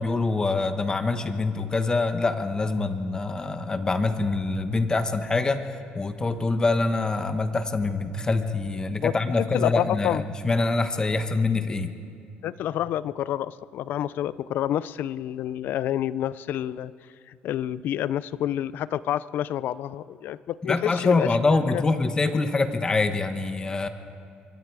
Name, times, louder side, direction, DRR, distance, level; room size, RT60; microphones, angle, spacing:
voice 1, 0.0-5.7 5.9-11.9 20.7-23.9, left 3 dB, 20° left, 9 dB, 1.2 m, -25 dB
voice 2, 9.0-10.2 12.4-16.9 17.3-21.4 21.7-21.8, left 11 dB, 65° left, 18 dB, 0.5 m, -28 dB
24.5 x 23.0 x 4.8 m, 2.4 s
cardioid pair, 120°, 4 cm